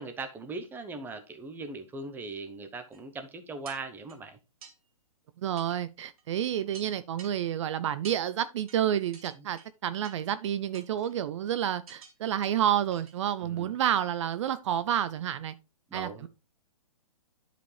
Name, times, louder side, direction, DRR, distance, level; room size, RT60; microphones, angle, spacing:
voice 1, 0.0-4.4 13.4-13.7 15.9-16.3, right 3 dB, 10° right, 0.8 m, -39 dB
sound 1, 2.9-3.0 3.7-4.2 4.6-4.8 5.6-5.8 6.2-6.3 6.7-7.3 8.0-8.2 8.7-8.8 9.1-9.7 10.0-10.3 10.7-11.2 11.9-12.1 12.4-12.5 12.9-13.2 13.6-13.7, right 6 dB, 70° right, 2.5 m, -49 dB
voice 2, 5.4-15.6 15.9-16.3, right 10 dB, 50° right, 0.5 m, -29 dB
10.5 x 5.1 x 3.3 m
hypercardioid pair, 135°, 19 cm